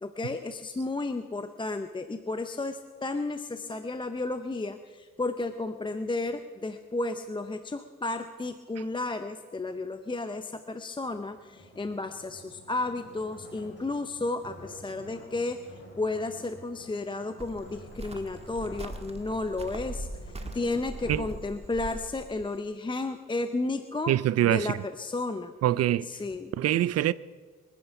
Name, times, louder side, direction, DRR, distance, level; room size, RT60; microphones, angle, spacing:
voice 1, 0.0-24.1 24.4-25.5 26.0-26.5, left 2 dB, 15° left, 0.7 m, -33 dB
sound 1, 11.1-22.0, left 1 dB, 35° left, 6.2 m, -50 dB
Cricket, 17.4-22.6, right 1 dB, 20° right, 1.6 m, -41 dB
voice 2, 24.1-24.7 25.6-26.2 26.6-27.1, right 13 dB, 55° right, 0.5 m, -24 dB
23.5 x 9.8 x 5.9 m
cardioid pair, 90°, 30 cm